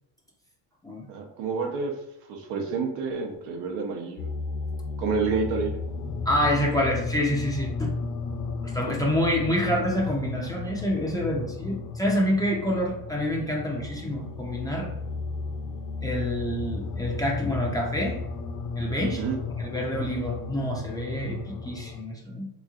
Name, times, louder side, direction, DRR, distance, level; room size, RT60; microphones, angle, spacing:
voice 1, 1.1-1.9 2.3-4.3 5.0-5.7 19.2-19.4, right 4 dB, 75° right, 2 dB, 0.8 m, -29 dB
sound 1, 4.2-22.0, left 4 dB, 50° left, 0.5 m, -34 dB
voice 2, 6.3-7.9 8.6-14.9 16.0-18.2 18.8-19.2 19.6-22.5, equal, 10° left, -2 dB, 0.6 m, -27 dB
3.5 x 3.1 x 2.4 m, 0.82 s
supercardioid pair, 100°, 42 cm